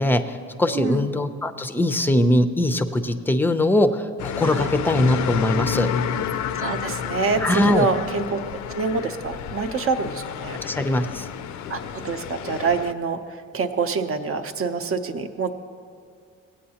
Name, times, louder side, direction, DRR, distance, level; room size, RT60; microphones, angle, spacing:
voice 1, 0.0-5.9 7.4-7.9 10.6-11.3, left 1 dB, 5° left, 9 dB, 0.5 m, -21 dB
voice 2, 0.7-1.1 4.5-4.7 6.6-8.4 8.7-10.6 11.7-13.2 13.5-15.5, right 4 dB, 45° right, 8 dB, 0.7 m, -26 dB
sound 1, 4.2-12.9, left 7 dB, 70° left, 0.5 m, -29 dB
17.0 x 8.6 x 2.8 m, 2.2 s
cardioid pair, 90°, 30 cm